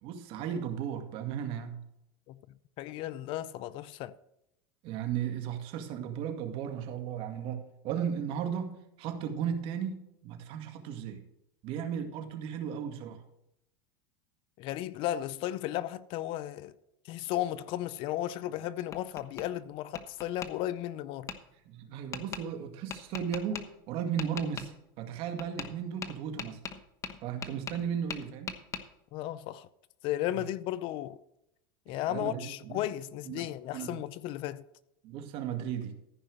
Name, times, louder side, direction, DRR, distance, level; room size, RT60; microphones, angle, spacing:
voice 1, 0.0-1.8 4.8-11.2 11.6-13.2 21.7-26.6 27.2-28.6 30.3-30.4 32.1-32.8 33.3-33.5 33.7-34.0 35.0-35.9, right 8 dB, 50° right, 2.1 m, -35 dB
voice 2, 2.8-4.1 14.6-16.7 17.0-21.3 29.1-29.7 30.0-31.2 31.9-34.6, left 13 dB, 50° left, 0.6 m, -34 dB
Tap, 18.4-19.5 19.9-20.5 21.3-21.4 22.1-22.4 22.9-23.6 24.2-24.7 25.4-25.7 26.0-27.8 28.1-28.8, left 7 dB, 25° left, 1.1 m, -39 dB
14.5 x 5.5 x 6.4 m
supercardioid pair, 130°, 11 cm